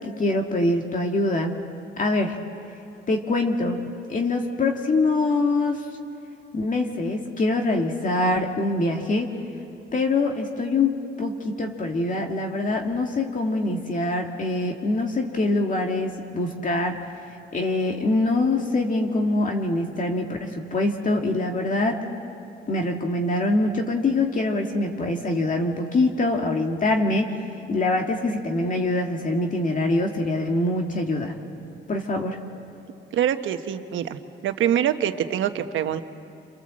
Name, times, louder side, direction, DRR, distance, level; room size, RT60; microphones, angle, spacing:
voice 1, 0.0-1.6 2.0-2.4 3.1-3.8 4.1-5.9 6.5-9.3 9.9-17.1 17.5-22.0 22.7-31.3 31.9-32.4, left 2 dB, 40° left, 2 dB, 2.1 m, -24 dB
voice 2, 33.1-36.0, right 10 dB, 80° right, 8 dB, 1.2 m, -25 dB
29.5 x 24.0 x 7.6 m, 2.6 s
cardioid pair, 90°, 20 cm